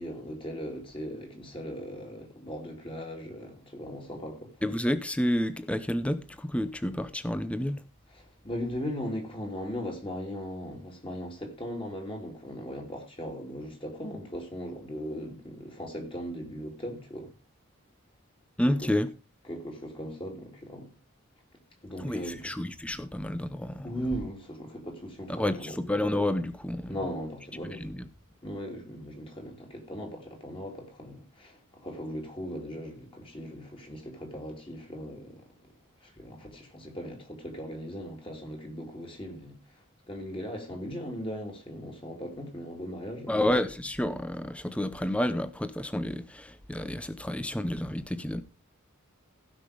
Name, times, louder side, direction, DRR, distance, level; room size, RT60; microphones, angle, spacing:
voice 1, 0.0-4.5 8.1-17.3 18.7-18.8 19.5-20.9 21.8-22.5 23.8-25.7 26.9-27.9 28.4-35.4 36.0-39.6 40.1-43.4, equal, 25° left, 2.9 m, -38 dB
voice 2, 4.6-7.8 18.6-19.1 22.0-23.9 25.3-27.0 27.7-28.0 43.3-48.4, left 1 dB, 5° left, 0.7 m, -30 dB
16.0 x 6.0 x 5.0 m
head